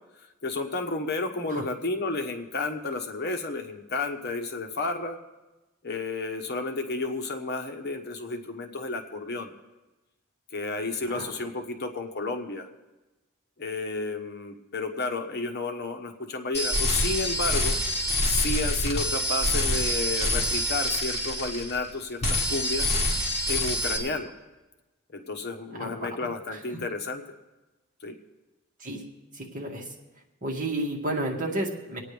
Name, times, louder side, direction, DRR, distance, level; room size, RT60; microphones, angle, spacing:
voice 1, 0.4-5.2 5.8-9.5 10.5-12.7 13.6-17.8 18.2-22.9 23.5-24.3 25.1-27.2 28.0-28.2, left 3 dB, 50° left, 5 dB, 1.1 m, -31 dB
sound 1, 16.5-21.9 22.2-24.0, left 1 dB, 35° left, 2.3 m, -26 dB
voice 2, 25.8-26.6 28.8-29.0 29.4-29.8 30.4-32.0, right 1 dB, 40° right, -1 dB, 2.1 m, -32 dB
26.0 x 9.2 x 3.4 m, 1.1 s
head